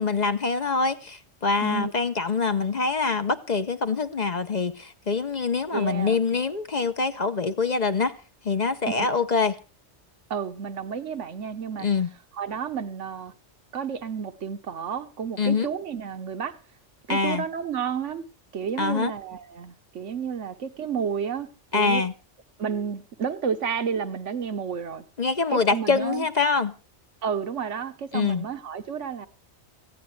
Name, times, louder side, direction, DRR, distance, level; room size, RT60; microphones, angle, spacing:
voice 1, 0.0-8.2 8.4-9.6 11.8-12.1 15.4-15.7 17.1-17.4 18.8-19.1 21.7-22.1 25.2-26.7 28.1-28.4, left 4 dB, 40° left, 0.8 m, -25 dB
voice 2, 5.7-6.2 8.9-9.1 10.3-11.9 12.4-13.3 13.7-16.6 17.1-18.2 18.5-22.0 22.6-25.0 25.5-26.3 27.2-29.3, right 7 dB, 80° right, 1.4 m, -31 dB
18.5 x 14.5 x 3.3 m
omnidirectional pair, 1.2 m